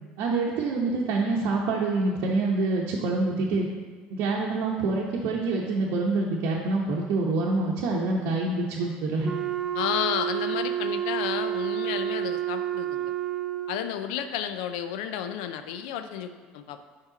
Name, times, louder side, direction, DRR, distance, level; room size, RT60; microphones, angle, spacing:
voice 1, 0.2-3.7 4.1-9.3, right 3 dB, 65° right, -3 dB, 0.8 m, -26 dB
Wind instrument woodwind instrument, 9.2-13.9, right 11 dB, 20° right, 0.6 m, -29 dB
voice 2, 9.7-13.1 13.7-16.8, left 9 dB, 75° left, 9 dB, 0.4 m, -32 dB
5.4 x 4.7 x 3.9 m, 1.5 s
hypercardioid pair, 75°, 5 cm